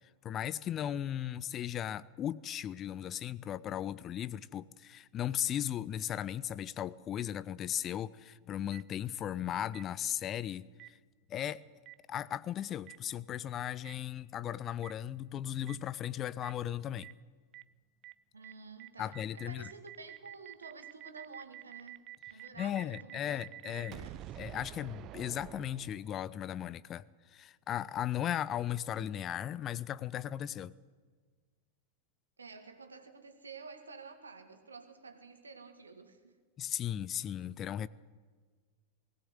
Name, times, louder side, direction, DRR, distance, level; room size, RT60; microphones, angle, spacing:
voice 1, 0.2-11.0 11.3-11.6 12.1-17.1 19.0-19.6 22.3-24.1 24.4-30.7 36.6-37.9, left 10 dB, 30° left, 19 dB, 0.5 m, -37 dB
Boom, 8.7-8.8 9.7-9.8 10.8-10.9 11.9-12.0 12.9-13.0 13.8-13.9 14.8-14.9 15.7-15.8 16.4-16.5 17.0-17.1 17.5-17.6 18.0-18.1 18.4-18.5 18.8-26.4, right 15 dB, 35° right, 0.5 m, -48 dB
voice 2, 18.3-24.3 32.4-36.4, right 4 dB, 75° right, 7 dB, 2.0 m, -51 dB
20.0 x 17.0 x 8.1 m, 1.5 s
figure-of-eight pair, 90°, 0 cm